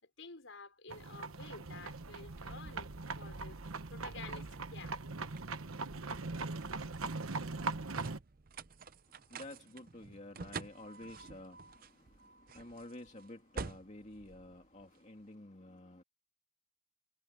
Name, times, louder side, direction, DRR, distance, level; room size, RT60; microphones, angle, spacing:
voice 1, 0.0-5.0, left 4 dB, 65° left, 5.4 m, -52 dB
sound 1, 0.9-8.2, right 3 dB, 85° right, 1.2 m, -41 dB
sound 2, 2.9-15.2, right 4 dB, 45° right, 0.6 m, -50 dB
voice 2, 9.3-16.0, left 1 dB, 35° left, 2.3 m, -51 dB
head